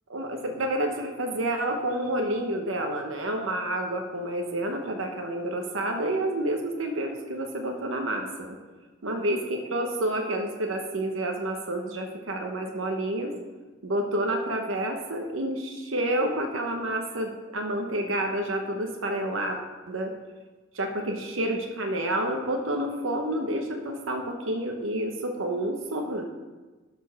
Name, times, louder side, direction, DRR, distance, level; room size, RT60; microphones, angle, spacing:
voice 1, 0.1-8.6 9.0-13.3 13.8-19.6 19.9-20.1 20.7-26.2, right 1 dB, 80° right, 2 dB, 1.0 m, -29 dB
11.5 x 4.5 x 6.4 m, 1.2 s
head